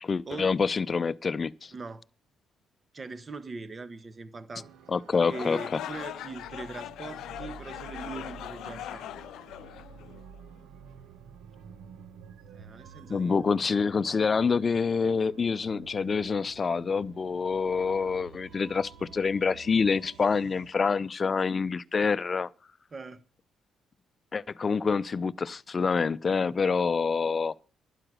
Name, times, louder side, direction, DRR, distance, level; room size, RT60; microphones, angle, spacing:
voice 1, 0.0-1.7 4.9-5.8 13.1-22.5 24.3-27.5, left 5 dB, 35° left, 0.6 m, -27 dB
voice 2, 1.7-2.0 2.9-4.7 5.3-9.1 12.5-13.4 22.9-23.2, right 3 dB, 35° right, 1.3 m, -41 dB
sound 1, 4.6-20.7, right 6 dB, 85° right, 1.0 m, -50 dB
sound 2, 5.2-10.4, left 12 dB, 80° left, 0.5 m, -40 dB
12.0 x 9.9 x 6.3 m
cardioid pair, 90°, 0 cm